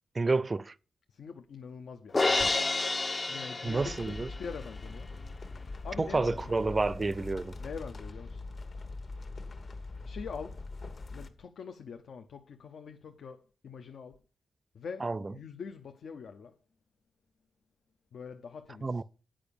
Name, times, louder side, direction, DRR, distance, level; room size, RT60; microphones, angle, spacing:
voice 1, 0.1-0.7 3.6-4.3 6.0-7.6 15.0-15.3 18.8-19.0, right 3 dB, 30° right, 0.4 m, -29 dB
voice 2, 1.1-2.3 3.3-5.1 5.8-6.7 7.6-8.4 10.0-10.6 11.1-14.2 14.7-16.5 18.1-19.0, left 6 dB, 80° left, 0.6 m, -44 dB
Crash cymbal, 2.1-4.4, left 3 dB, 30° left, 0.4 m, -29 dB
sound 1, 3.7-11.3, left 3 dB, 55° left, 1.2 m, -42 dB
8.8 x 5.0 x 6.8 m
wide cardioid pair, 100°, 0 cm